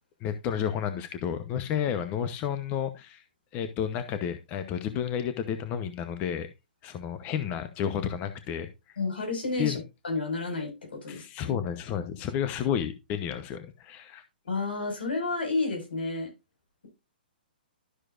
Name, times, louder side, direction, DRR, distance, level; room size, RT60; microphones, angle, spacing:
voice 1, 0.2-3.2 3.5-6.5 6.8-8.7 9.6-9.8 11.1-14.2, left 8 dB, 30° left, 0.9 m, -31 dB
voice 2, 9.0-9.8 10.0-11.6 14.4-16.3, left 3 dB, 90° left, 5.3 m, -31 dB
12.5 x 6.4 x 2.5 m
hypercardioid pair, 145°, 5 cm